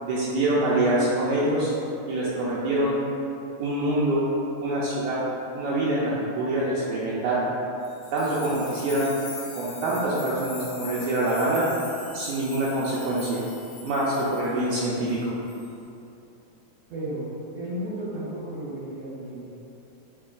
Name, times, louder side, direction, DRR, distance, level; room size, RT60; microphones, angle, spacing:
voice 1, 0.0-1.7 2.1-3.0 3.6-4.2 4.6-5.2 5.5-7.4 8.1-9.2 9.5-11.7 12.1-13.4 13.8-15.3, right 1 dB, 85° right, -7 dB, 1.6 m, -25 dB
sound 1, 7.8-15.2 15.5-15.8, left 5 dB, 85° left, 2.4 m, -43 dB
voice 2, 16.9-17.2 17.5-19.4, right 1 dB, 70° right, -11 dB, 1.7 m, -33 dB
6.6 x 2.9 x 2.4 m, 2.8 s
omnidirectional pair, 3.9 m